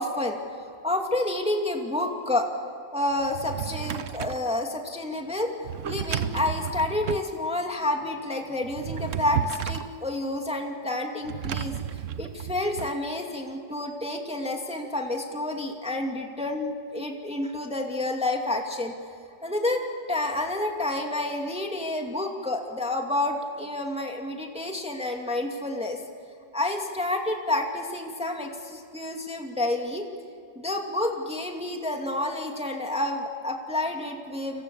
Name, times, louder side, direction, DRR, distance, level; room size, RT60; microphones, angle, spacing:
voice 1, 0.0-2.5 2.9-5.5 5.8-11.7 12.2-18.9 19.4-26.0 26.5-30.1 30.6-34.6, left 2 dB, 5° right, 2 dB, 2.3 m, -29 dB
Drawer open or close, 3.2-4.5 5.6-7.3 8.6-9.9 11.2-12.9, right 10 dB, 55° right, 0.9 m, -33 dB
30.0 x 26.0 x 7.1 m, 2.3 s
omnidirectional pair, 2.0 m